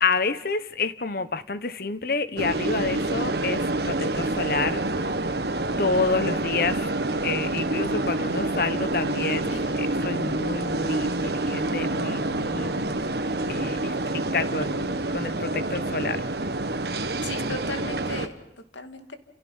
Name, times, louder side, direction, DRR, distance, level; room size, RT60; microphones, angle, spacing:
voice 1, 0.0-4.8 5.8-6.9 7.2-12.9 13.5-16.3, left 4 dB, 55° left, 12 dB, 1.2 m, -29 dB
sound 1, 2.4-18.3, right 2 dB, 60° right, 1.4 m, -27 dB
voice 2, 17.2-19.2, left 2 dB, 85° left, 7 dB, 2.4 m, -36 dB
29.5 x 28.5 x 5.6 m, 0.85 s
head